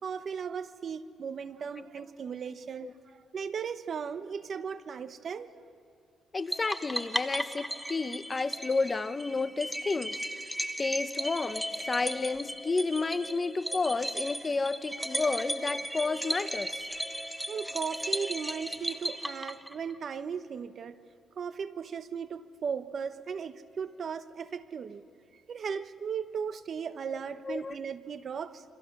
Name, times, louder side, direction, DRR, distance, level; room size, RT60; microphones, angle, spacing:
voice 1, 0.0-2.9 3.3-5.5 17.5-21.0 21.4-25.0 25.5-28.6, right 6 dB, 55° right, 12 dB, 1.0 m, -36 dB
voice 2, 6.3-10.1 10.4-10.5 10.8-16.9 27.4-27.8, left 3 dB, 30° left, 12 dB, 0.9 m, -31 dB
sound 1, 6.5-20.0, equal, 5° right, 1.1 m, -36 dB
28.0 x 25.5 x 6.1 m, 2.4 s
cardioid pair, 90°, 0 cm